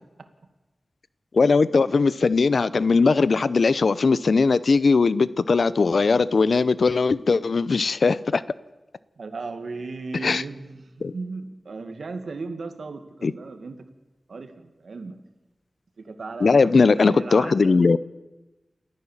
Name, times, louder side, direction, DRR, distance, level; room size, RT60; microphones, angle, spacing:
voice 1, 1.3-8.4 10.2-10.4 11.0-11.1 13.2-13.3 16.4-18.0, left 4 dB, 70° left, 17 dB, 0.7 m, -19 dB
voice 2, 9.2-13.8 14.3-15.2 16.0-17.8, right 3 dB, 80° right, 8 dB, 2.1 m, -36 dB
29.0 x 14.0 x 7.3 m, 1.1 s
wide cardioid pair, 90°, 0 cm